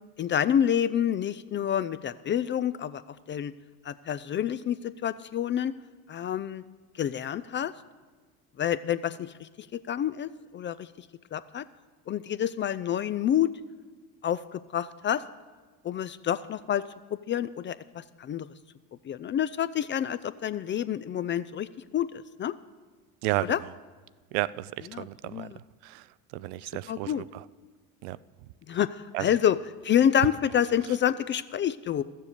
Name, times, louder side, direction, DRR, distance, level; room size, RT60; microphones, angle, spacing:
voice 1, 0.2-3.0 3.3-3.5 3.8-5.7 6.1-6.6 7.0-7.7 8.6-11.1 11.3-11.7 12.1-13.5 14.2-15.2 15.8-16.8 17.3-18.5 19.0-21.7 21.9-22.1 22.4-22.5 23.5-23.6 24.9-25.1 25.3-25.5 26.9-27.2 28.7-29.6 29.8-32.0, left 9 dB, 25° left, 0.4 m, -28 dB
voice 2, 23.2-23.7 24.3-27.4 28.0-28.2 29.1-29.3, right 17 dB, 65° right, 0.6 m, -33 dB
14.0 x 7.4 x 6.7 m
hypercardioid pair, 75°, 46 cm